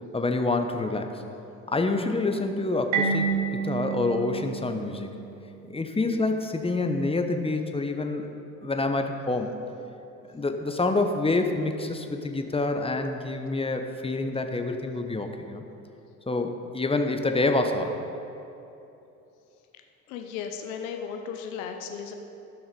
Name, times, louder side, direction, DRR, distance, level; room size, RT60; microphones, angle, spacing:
voice 1, 0.1-1.2 1.7-5.1 5.7-8.3 8.6-9.5 10.3-15.6 16.3-18.0, left 2 dB, 15° left, 5 dB, 1.1 m, -27 dB
Marimba xylophone, 2.9-5.6, right 6 dB, 70° right, 1.7 m, -29 dB
voice 2, 20.1-22.1, left 7 dB, 70° left, 4 dB, 0.9 m, -35 dB
15.0 x 6.2 x 5.3 m, 2.9 s
hypercardioid pair, 60°, 42 cm